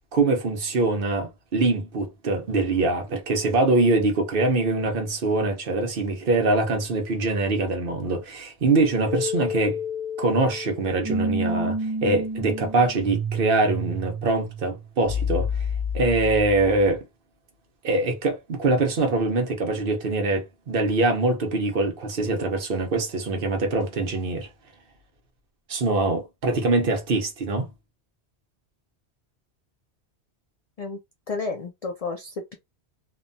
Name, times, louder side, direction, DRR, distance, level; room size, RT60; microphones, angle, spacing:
voice 1, 0.1-9.8 10.2-15.5 15.9-17.0 17.8-24.5 25.7-27.7, right 2 dB, 60° right, 0.9 m, -23 dB
sound 1, 9.0-16.9, left 1 dB, 20° right, 0.5 m, -29 dB
voice 2, 31.3-32.5, left 3 dB, 60° left, 0.4 m, -31 dB
2.9 x 2.1 x 2.6 m
omnidirectional pair, 1.1 m